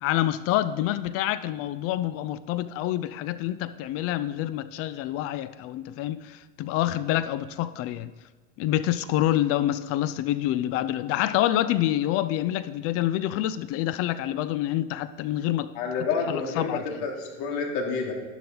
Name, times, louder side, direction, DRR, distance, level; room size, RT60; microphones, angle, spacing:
voice 1, 0.0-8.1 8.6-15.7 16.3-16.8, left 13 dB, 40° left, 0.5 m, -27 dB
voice 2, 15.7-18.1, left 5 dB, 55° left, 3.0 m, -29 dB
12.0 x 11.0 x 3.9 m
supercardioid pair, 115°, 36 cm